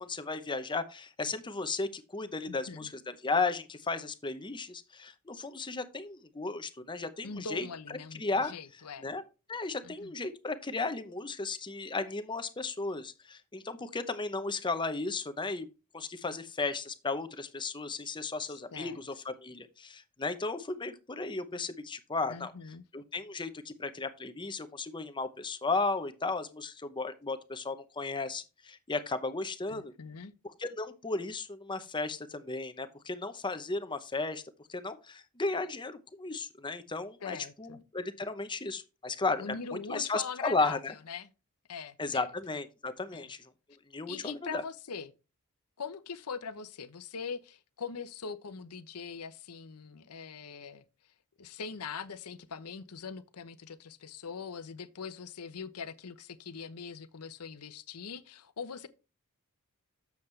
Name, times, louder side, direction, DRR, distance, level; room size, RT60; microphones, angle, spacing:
voice 1, 0.0-7.7 8.2-8.5 9.0-9.2 9.5-15.7 15.9-22.5 22.9-29.9 30.6-34.4 34.7-40.9 42.0-43.4 43.9-44.6, left 3 dB, 20° left, 0.8 m, -35 dB
voice 2, 2.5-2.9 7.2-9.1 9.8-10.1 18.4-19.0 22.3-22.8 29.7-30.3 37.2-37.8 39.4-40.8 41.1-41.3 41.7-42.3 43.1-43.3 44.1-45.1 45.8-50.8 51.4-58.9, left 5 dB, 80° left, 0.8 m, -42 dB
7.8 x 7.1 x 3.2 m
head